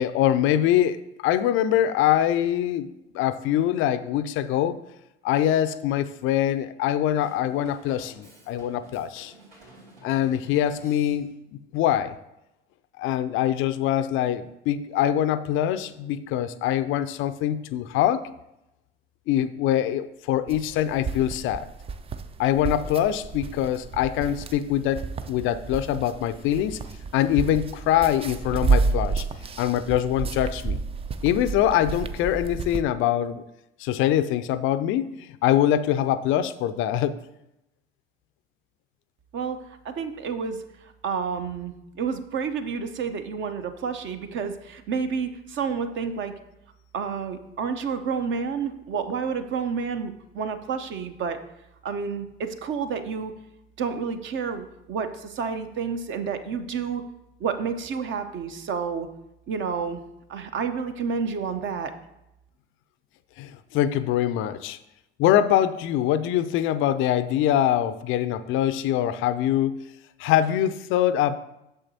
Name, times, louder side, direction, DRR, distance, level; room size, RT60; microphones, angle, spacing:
voice 1, 0.0-4.8 5.2-9.3 10.0-12.2 13.0-18.3 19.3-21.7 22.4-26.8 27.1-29.2 29.6-30.8 31.2-33.4 33.8-37.2 63.4-64.8 65.2-69.8 70.2-71.4, left 11 dB, 45° left, 12 dB, 0.5 m, -24 dB
Drum kit / Drum, 7.2-11.5, right 1 dB, 80° right, 2.7 m, -52 dB
sound 1, 20.5-32.8, right 4 dB, 20° right, 0.4 m, -30 dB
voice 2, 39.3-46.3 46.9-51.4 51.8-53.3 53.8-57.0 57.4-59.1 59.5-60.0 60.3-61.9, right 6 dB, 40° right, 8 dB, 0.8 m, -30 dB
8.9 x 6.6 x 2.8 m, 0.89 s
figure-of-eight pair, 60°, 29 cm